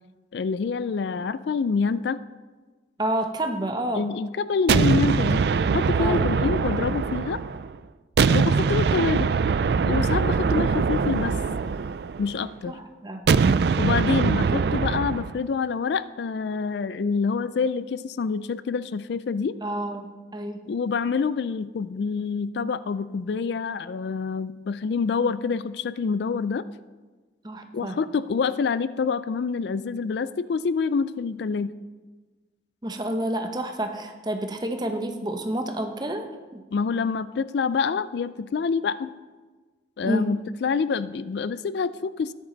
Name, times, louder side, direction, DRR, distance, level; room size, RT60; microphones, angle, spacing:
voice 1, 0.3-2.2 4.0-7.4 8.3-9.3 9.9-11.4 12.2-12.7 13.8-19.6 20.7-26.6 27.7-31.7 36.7-39.1 40.0-42.3, left 5 dB, 65° left, 16 dB, 0.3 m, -26 dB
voice 2, 3.0-4.1 6.0-6.3 12.7-13.2 19.6-20.7 27.4-28.0 32.8-36.6 40.0-40.4, right 1 dB, 20° right, 5 dB, 0.9 m, -29 dB
sound 1, 4.7-7.7 8.2-12.4 13.3-15.4, right 5 dB, 60° right, 0.3 m, -22 dB
13.0 x 10.5 x 3.9 m, 1.3 s
head